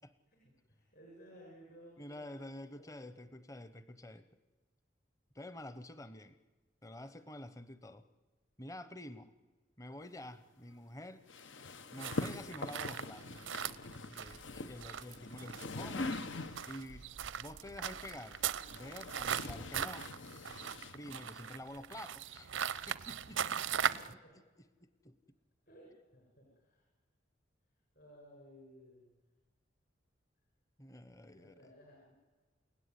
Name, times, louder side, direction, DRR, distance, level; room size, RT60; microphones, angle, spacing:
voice 1, 0.3-2.4 2.8-3.2 23.3-23.5 23.8-24.4 25.7-26.8 28.0-29.1 31.3-32.1, equal, 50° left, -3 dB, 7.1 m, -58 dB
voice 2, 2.0-4.3 5.3-6.4 6.8-8.1 8.6-9.3 9.8-11.2 11.9-13.3 14.1-16.2 16.7-17.1 17.4-18.4 18.7-20.1 20.9-22.5 22.9-24.4 24.8-25.2 30.8-31.6, left 1 dB, 15° left, 13 dB, 0.8 m, -49 dB
sound 1, 11.3-16.9 18.0-21.5, left 2 dB, 80° left, 1.3 m, -43 dB
sound 2, 12.0-24.1, right 8 dB, 85° right, 0.7 m, -39 dB
29.5 x 17.0 x 9.7 m, 1.3 s
head